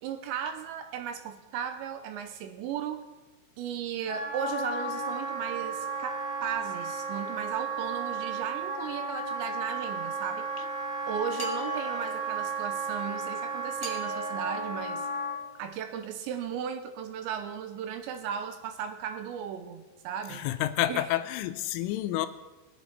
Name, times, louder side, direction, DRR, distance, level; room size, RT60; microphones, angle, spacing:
voice 1, 0.0-3.0 3.6-10.5 11.1-15.1 15.6-20.5 20.9-21.1, right 8 dB, 80° right, 2.8 m, -36 dB
Wind instrument woodwind instrument, 4.1-15.4, right 3 dB, 15° left, 1.9 m, -34 dB
sound 1, 11.4-12.5 13.8-15.7, right 2 dB, 20° right, 0.6 m, -42 dB
voice 2, 20.3-22.3, left 14 dB, 90° left, 3.2 m, -29 dB
20.5 x 8.2 x 4.1 m
omnidirectional pair, 5.5 m